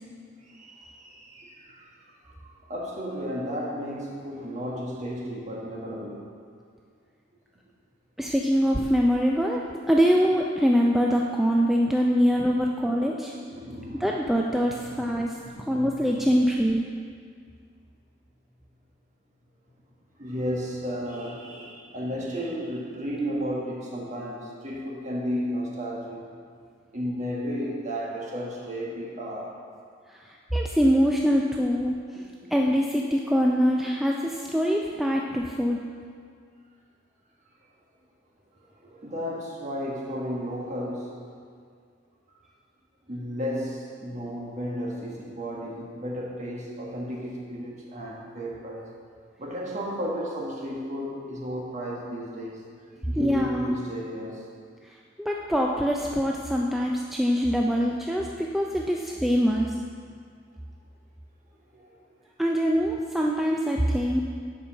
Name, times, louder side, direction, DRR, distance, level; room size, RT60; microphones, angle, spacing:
voice 1, 0.4-6.2 12.5-12.7 13.4-14.1 14.5-16.0 20.2-26.2 26.9-29.5 38.8-41.2 43.1-48.9 49.4-52.6 53.1-54.4 61.7-62.1, equal, 35° right, -3 dB, 1.4 m, -33 dB
voice 2, 8.2-9.6 9.9-13.3 14.0-15.3 15.7-16.8 30.5-32.0 32.5-35.8 53.2-53.8 55.2-59.7 62.4-64.2, equal, ahead, -1 dB, 0.3 m, -23 dB
7.2 x 5.4 x 6.2 m, 2.1 s
head